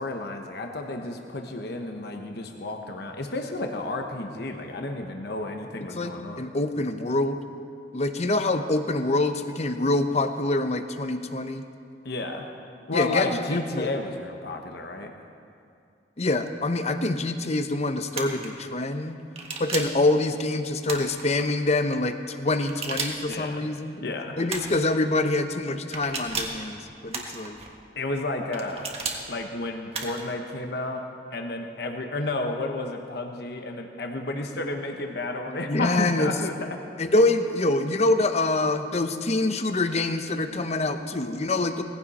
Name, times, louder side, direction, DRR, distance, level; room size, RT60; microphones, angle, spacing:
voice 1, 0.0-6.5 12.0-12.6 12.9-15.1 23.3-23.7 24.0-24.4 28.0-28.9 29.3-36.8, left 2 dB, 60° left, 3 dB, 1.0 m, -32 dB
voice 2, 5.9-7.4 7.9-11.6 12.9-13.9 16.2-19.2 19.6-24.0 24.4-27.6 35.6-36.3 37.0-41.8, left 2 dB, 35° left, 8 dB, 0.8 m, -25 dB
sound 1, 18.1-18.5 19.3-20.0 20.8-21.5 22.6-23.4 24.5-24.9 25.9-26.6 27.1-27.7 28.5-29.2 29.9-30.3, right 4 dB, 35° right, 1.5 m, -33 dB
19.0 x 15.5 x 4.2 m, 2.5 s
head